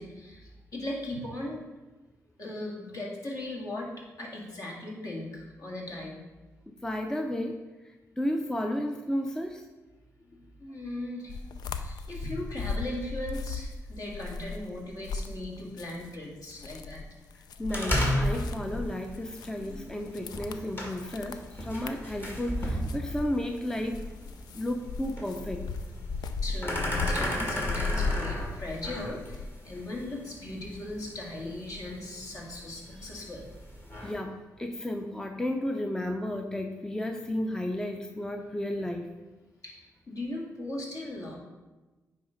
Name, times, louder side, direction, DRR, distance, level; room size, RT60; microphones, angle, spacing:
voice 1, 0.0-1.6 2.4-6.2 10.3-11.4 11.7-17.0 19.6-19.9 21.5-21.6 22.1-22.2 23.0-23.1 26.4-33.5 39.6-41.4, left 1 dB, 55° left, -2 dB, 2.0 m, -38 dB
voice 2, 6.7-7.6 8.2-9.7 17.6-24.1 24.5-25.7 34.0-39.1, left 1 dB, 10° left, 4 dB, 0.5 m, -33 dB
sound 1, 11.3-16.1 16.4-29.5, left 4 dB, 85° left, 0.4 m, -36 dB
sound 2, 17.7-34.2, equal, 30° left, 1.7 m, -35 dB
9.2 x 3.2 x 5.0 m, 1.2 s
cardioid pair, 75°, 7 cm